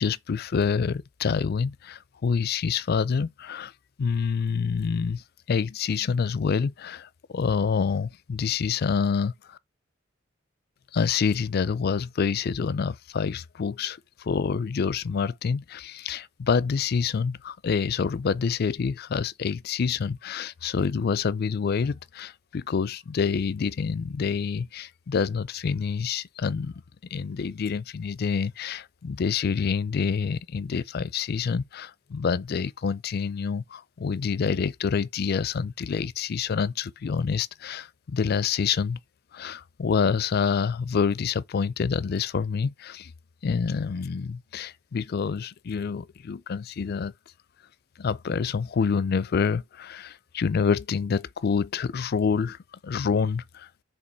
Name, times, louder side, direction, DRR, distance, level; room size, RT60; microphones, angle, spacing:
voice 1, 0.0-3.7 4.0-9.6 10.9-26.7 27.1-39.0 39.3-43.1 43.4-47.1 48.0-53.7, left 6 dB, 50° left, 0.4 m, -27 dB
5.0 x 3.7 x 5.6 m
head